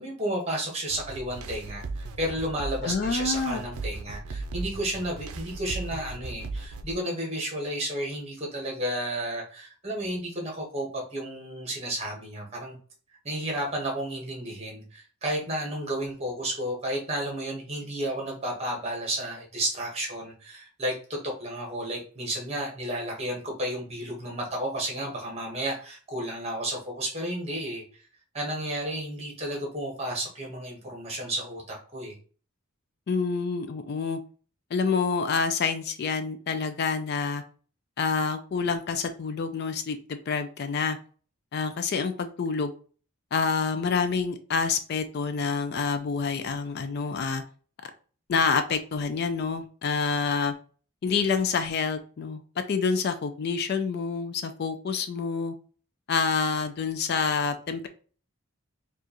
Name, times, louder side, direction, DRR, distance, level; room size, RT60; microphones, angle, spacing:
voice 1, 0.0-12.8 13.2-28.0 28.3-32.2, right 1 dB, 30° right, -1 dB, 1.2 m, -32 dB
sound 1, 0.9-6.9, right 3 dB, 85° right, 0.5 m, -37 dB
voice 2, 2.8-3.6 33.1-34.2 34.7-37.4 38.0-41.0 41.5-42.7 43.3-47.4 47.8-47.9 48.3-50.5 51.0-52.4 52.7-55.5 56.1-57.9, left 5 dB, 50° left, 9 dB, 0.3 m, -27 dB
4.7 x 2.4 x 2.9 m, 0.40 s
head